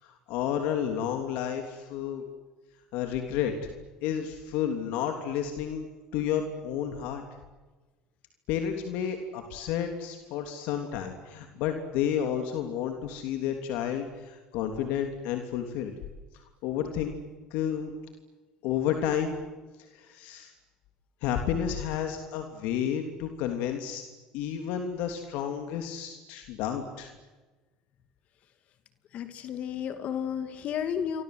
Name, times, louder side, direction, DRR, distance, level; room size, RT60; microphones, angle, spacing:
voice 1, 0.0-2.2 2.9-3.5 4.0-5.9 6.1-7.2 8.5-15.9 16.3-17.1 17.5-17.9 18.6-19.3 19.9-20.5 21.2-24.0 24.3-27.1, left 9 dB, 75° left, 5 dB, 3.2 m, -31 dB
voice 2, 29.1-31.2, left 8 dB, 55° left, 9 dB, 2.5 m, -32 dB
29.5 x 25.0 x 8.1 m, 1.3 s
supercardioid pair, 95°, 3 cm